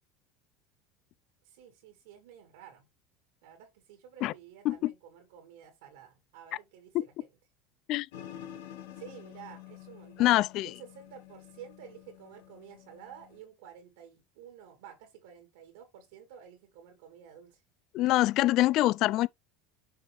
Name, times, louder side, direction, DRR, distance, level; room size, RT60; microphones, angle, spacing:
voice 1, 1.4-2.9 3.4-7.3 8.9-17.6, right 8 dB, 80° right, 2.2 m, -51 dB
sound 1, 8.1-13.4, left 11 dB, 80° left, 1.4 m, -49 dB
voice 2, 10.2-10.7 17.9-19.3, left 16 dB, 55° left, 0.5 m, -25 dB
6.7 x 5.2 x 3.3 m
supercardioid pair, 100°, 0 cm